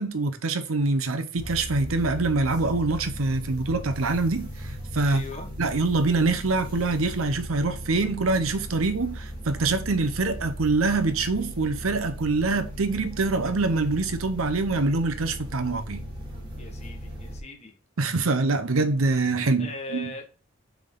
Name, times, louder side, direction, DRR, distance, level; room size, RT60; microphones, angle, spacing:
voice 1, 0.0-5.2 5.6-16.1 18.0-20.1, right 3 dB, 85° right, 0.8 m, -25 dB
sound 1, 1.4-17.4, equal, 25° right, 1.6 m, -37 dB
voice 2, 5.0-5.5 16.6-17.7 19.6-20.2, left 2 dB, 30° left, 1.2 m, -39 dB
6.9 x 3.6 x 3.8 m
head